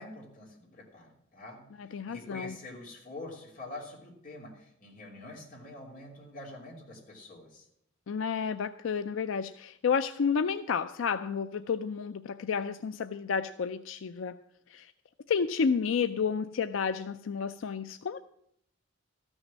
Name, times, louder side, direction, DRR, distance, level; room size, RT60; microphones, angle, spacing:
voice 1, 0.0-7.7, left 2 dB, 45° left, -1 dB, 3.0 m, -46 dB
voice 2, 1.8-2.6 8.1-14.4 14.7-14.9 15.3-18.2, left 6 dB, 85° left, 11 dB, 0.4 m, -31 dB
13.5 x 6.3 x 7.4 m, 0.72 s
head